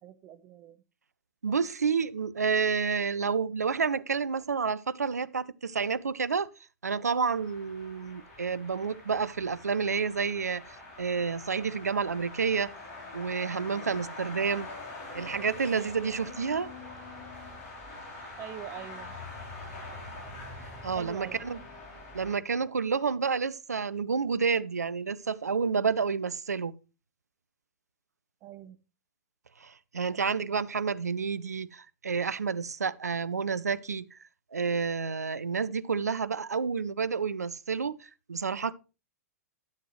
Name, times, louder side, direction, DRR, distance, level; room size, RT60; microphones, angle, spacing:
voice 1, 0.0-0.8 18.4-19.1 21.0-21.4 28.4-28.8, right 11 dB, 30° right, 0.9 m, -43 dB
voice 2, 1.4-6.5 6.8-12.7 13.1-14.7 15.1-16.7 20.8-21.6 22.1-26.7 29.6-34.2 34.5-38.7, right 5 dB, 75° right, 0.5 m, -29 dB
sound 1, 7.2-22.3, left 2 dB, 40° left, 3.9 m, -44 dB
12.5 x 7.8 x 3.1 m
figure-of-eight pair, 105°, 9 cm